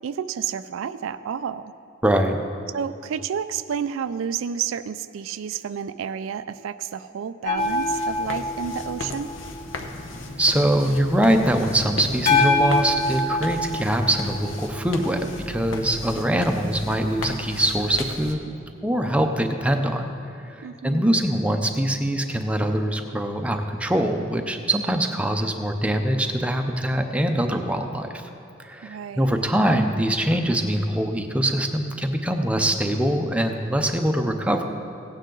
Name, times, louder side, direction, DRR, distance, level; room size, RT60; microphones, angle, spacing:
voice 1, 0.0-1.7 2.7-9.3 20.6-21.2 28.8-29.4, right 7 dB, 80° right, 13 dB, 0.4 m, -30 dB
voice 2, 2.0-2.4 10.4-18.5 18.8-20.1 20.4-28.2 28.6-34.7, right 1 dB, 5° right, 4 dB, 0.6 m, -23 dB
sound 1, 7.5-10.3 12.3-15.5 18.3-18.4, left 2 dB, 45° left, 1.7 m, -26 dB
sound 2, 7.6-18.3, left 2 dB, 70° left, 0.9 m, -36 dB
16.5 x 9.1 x 3.9 m, 2.6 s
head